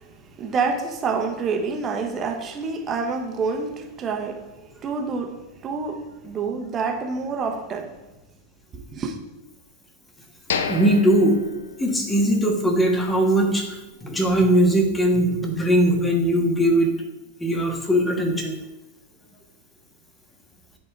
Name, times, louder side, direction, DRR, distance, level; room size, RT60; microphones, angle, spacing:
voice 1, 0.0-8.0 8.7-9.2, right 4 dB, 25° right, 1.1 m, -28 dB
sound 1, 10.5-12.4 12.7-12.8 13.4-13.5, left 6 dB, 60° left, 0.6 m, -30 dB
voice 2, 10.7-11.4 11.8-16.9 17.4-18.6, right 1 dB, 10° left, 1.4 m, -20 dB
10.0 x 4.4 x 4.6 m
figure-of-eight pair, 90°, 0 cm